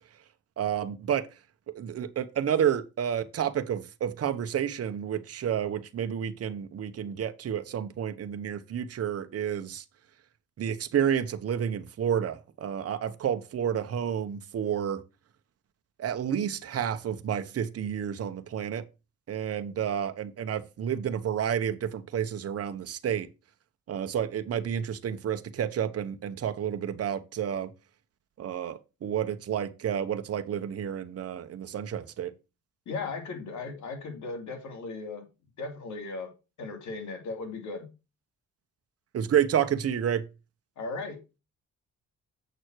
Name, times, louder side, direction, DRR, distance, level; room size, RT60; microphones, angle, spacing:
voice 1, 0.6-1.3 1.7-9.8 10.6-15.0 16.0-18.8 19.3-23.3 23.9-27.7 28.4-32.3 39.1-40.2, right 9 dB, 50° right, 1.0 m, -30 dB
voice 2, 32.9-35.2 35.6-36.3 36.6-37.9 40.8-41.2, left 3 dB, 70° left, 2.8 m, -37 dB
7.9 x 6.4 x 4.7 m
cardioid pair, 90°, 30 cm